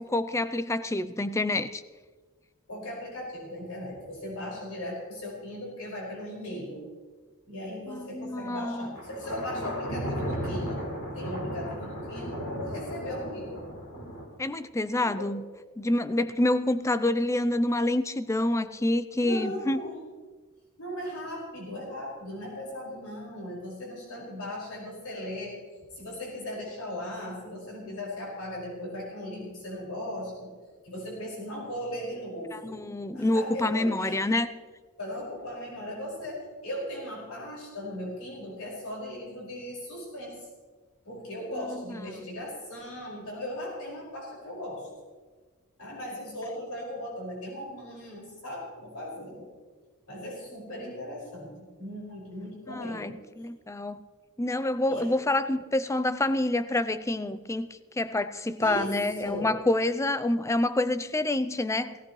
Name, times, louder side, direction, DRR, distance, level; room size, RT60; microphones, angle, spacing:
voice 1, 0.0-1.8 7.9-8.9 14.4-15.4 15.8-19.8 32.5-34.5 41.7-42.1 52.7-54.0 54.4-57.7 58.0-62.0, left 1 dB, 15° left, 13 dB, 0.5 m, -27 dB
voice 2, 2.7-6.8 7.5-10.8 11.1-13.7 15.0-15.3 19.2-19.9 20.8-25.6 25.9-30.5 30.8-32.8 33.1-34.2 35.0-40.4 41.0-44.9 45.8-49.5 50.1-53.1 54.9-55.1 58.6-58.9 59.2-59.5, left 1 dB, 85° left, -4 dB, 5.5 m, -38 dB
Thunder, 9.0-14.2, equal, 65° left, 3.6 m, -35 dB
17.5 x 17.0 x 3.2 m, 1.4 s
head